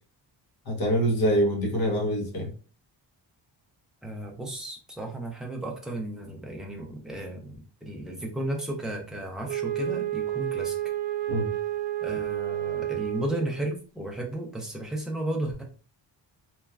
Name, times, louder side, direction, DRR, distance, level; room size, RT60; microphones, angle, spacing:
voice 1, 0.7-2.5 11.3-11.5, equal, 55° left, 1 dB, 1.0 m, -25 dB
voice 2, 4.0-10.8 12.0-15.6, right 1 dB, ahead, -1 dB, 0.4 m, -34 dB
Wind instrument woodwind instrument, 9.5-13.7, right 13 dB, 85° right, 0.5 m, -30 dB
3.1 x 2.3 x 2.2 m, 0.37 s
wide cardioid pair, 180°, 44 cm